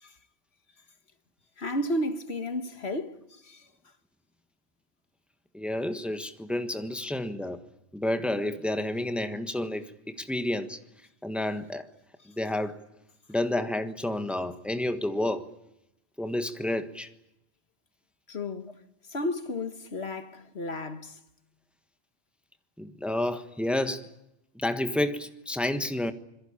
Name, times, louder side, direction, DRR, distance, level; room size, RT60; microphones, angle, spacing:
voice 1, 1.6-3.6 18.3-18.8 19.1-21.2, left 1 dB, 80° left, 1.9 m, -33 dB
voice 2, 5.5-7.6 7.9-10.8 11.2-11.9 12.4-12.8 13.3-15.5 16.2-17.1 22.8-24.1 24.5-26.1, left 1 dB, ahead, 1.3 m, -30 dB
26.5 x 22.0 x 8.8 m
omnidirectional pair, 1.1 m